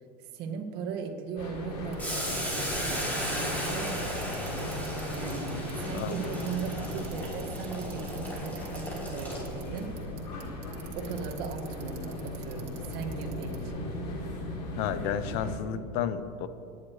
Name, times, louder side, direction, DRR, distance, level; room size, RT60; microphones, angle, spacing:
voice 1, 0.2-4.1 5.1-10.0 11.0-13.9, right 5 dB, 55° right, 3 dB, 1.8 m, -38 dB
sound 1, 1.4-15.5, left 1 dB, 80° left, 3.0 m, -37 dB
Bicycle, 1.9-13.7, right 6 dB, 85° right, 2.2 m, -50 dB
Boiling, 2.0-9.8, equal, 10° left, 3.0 m, -36 dB
voice 2, 14.8-16.5, left 9 dB, 60° left, 12 dB, 0.9 m, -32 dB
26.5 x 10.0 x 3.2 m, 2.8 s
supercardioid pair, 120°, 20 cm